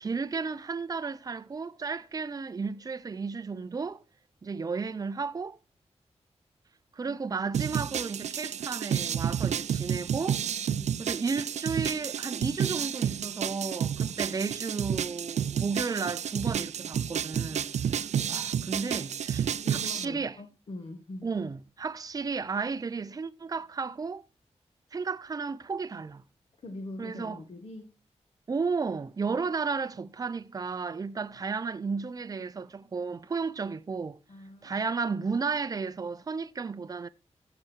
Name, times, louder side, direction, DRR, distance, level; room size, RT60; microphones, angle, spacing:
voice 1, 0.0-4.0 4.4-5.6 6.9-10.4 11.0-17.7 18.0-20.4 21.2-24.2 24.9-26.2 27.0-27.4 28.5-34.2 34.6-37.1, right 4 dB, 35° right, 0.5 m, -33 dB
sound 1, 7.5-20.1, right 8 dB, 85° right, 0.4 m, -31 dB
voice 2, 19.6-21.3 26.6-27.9 29.3-29.4 34.3-34.7, left 2 dB, 55° left, 1.7 m, -42 dB
14.0 x 6.0 x 4.5 m
wide cardioid pair, 135°, 11 cm